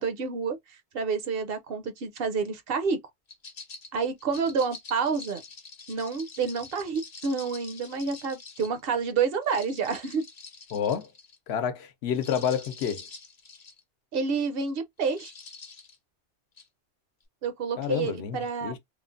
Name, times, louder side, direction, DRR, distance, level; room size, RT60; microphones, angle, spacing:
voice 1, 0.0-3.0 3.9-5.4 5.9-10.3 14.1-15.3 17.4-18.7, right 5 dB, 65° right, 0.7 m, -29 dB
sound 1, 3.3-8.8 9.4-11.4 12.1-13.8 14.3-14.5 15.1-16.0 16.6-16.7, left 4 dB, 45° left, 0.6 m, -46 dB
voice 2, 10.7-11.1 11.5-13.0 17.8-18.8, left 8 dB, 75° left, 0.8 m, -29 dB
3.1 x 2.0 x 2.4 m
omnidirectional pair, 1.1 m